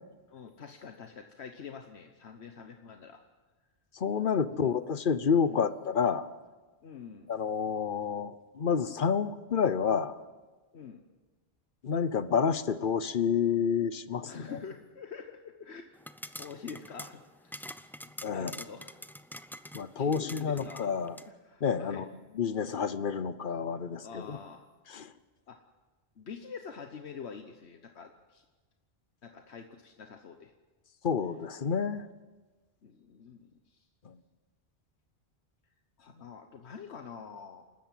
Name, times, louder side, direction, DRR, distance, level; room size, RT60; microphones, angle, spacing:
voice 1, 0.3-3.2 4.6-4.8 5.4-5.6 6.8-7.3 10.7-11.0 14.3-15.9 16.4-17.7 18.0-19.0 20.0-20.9 21.2-22.1 22.6-22.8 24.0-24.7 25.5-25.6 26.2-28.4 29.2-30.5 32.8-33.9 36.0-37.6, left 6 dB, 80° left, 6 dB, 1.3 m, -46 dB
voice 2, 3.9-6.3 7.3-10.2 11.8-14.6 18.2-18.5 19.7-21.2 21.6-22.1 22.4-24.4 24.9-25.1 31.0-32.1 34.0-34.2, left 6 dB, 55° left, 15 dB, 1.0 m, -29 dB
sound 1, 16.0-21.3, equal, 5° left, 0.4 m, -46 dB
29.0 x 13.0 x 7.5 m, 1.3 s
omnidirectional pair, 1.1 m